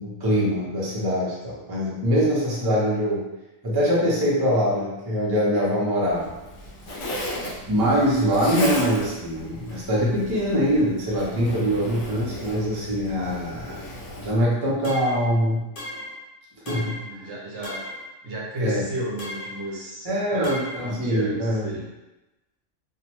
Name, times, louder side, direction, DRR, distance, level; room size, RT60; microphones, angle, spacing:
voice 1, 0.0-3.2 3.6-6.3 6.9-7.2 7.7-13.8 14.2-15.6 16.7-17.3 18.6-18.8 20.0-21.7, equal, 30° right, -6 dB, 0.4 m, -23 dB
Zipper (clothing), 6.1-14.3, left 1 dB, 75° left, 1.0 m, -35 dB
sound 1, 14.8-15.3 15.8-16.2 16.7-17.1 17.6-18.1 19.2-19.6 20.4-20.9, left 1 dB, 50° left, 0.7 m, -36 dB
voice 2, 16.8-17.8 18.2-21.9, right 1 dB, 65° right, -4 dB, 0.9 m, -34 dB
2.6 x 2.1 x 2.9 m, 1.0 s
omnidirectional pair, 1.3 m